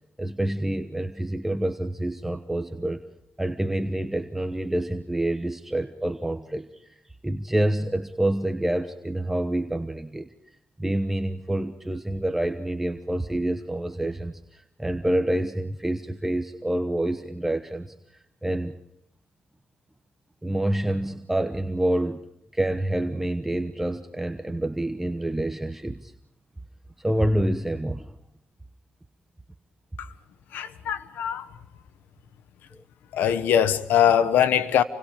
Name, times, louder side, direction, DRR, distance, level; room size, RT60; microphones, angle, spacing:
voice 1, 0.2-3.0 3.4-6.9 7.2-10.3 10.8-18.8 20.4-22.2 22.5-26.1 27.0-28.1, right 1 dB, 10° right, 1.1 m, -27 dB
voice 2, 30.5-31.5 33.1-34.8, left 9 dB, 80° left, 1.3 m, -22 dB
28.0 x 24.5 x 5.1 m
cardioid pair, 85°, 3 cm